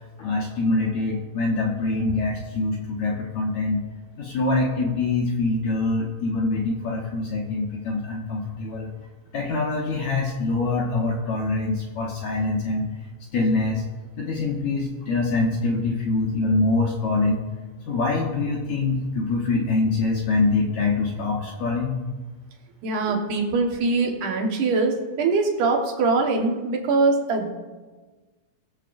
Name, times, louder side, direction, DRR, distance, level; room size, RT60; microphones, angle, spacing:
voice 1, 0.2-3.8 4.2-8.9 9.3-12.9 13.3-13.8 14.2-17.4 17.9-22.0, left 3 dB, 65° left, -2 dB, 1.9 m, -24 dB
voice 2, 22.8-27.5, right 3 dB, 65° right, 0 dB, 2.6 m, -22 dB
21.0 x 7.5 x 2.5 m, 1.3 s
omnidirectional pair, 4.4 m